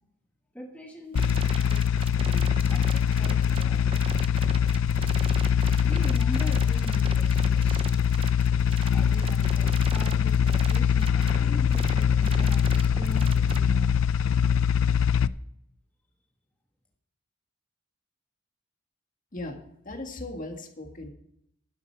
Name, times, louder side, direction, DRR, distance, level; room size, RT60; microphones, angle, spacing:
voice 1, 0.5-1.4 1.7-4.0 4.9-7.8 8.9-14.0, equal, 5° left, 0 dB, 1.3 m, -41 dB
sound 1, 1.1-13.6, right 4 dB, 25° right, 0.5 m, -39 dB
sound 2, 1.2-15.3, left 7 dB, 80° left, 0.4 m, -23 dB
voice 2, 19.9-21.1, left 2 dB, 40° left, 4 dB, 1.9 m, -37 dB
12.0 x 10.5 x 4.7 m, 0.74 s
head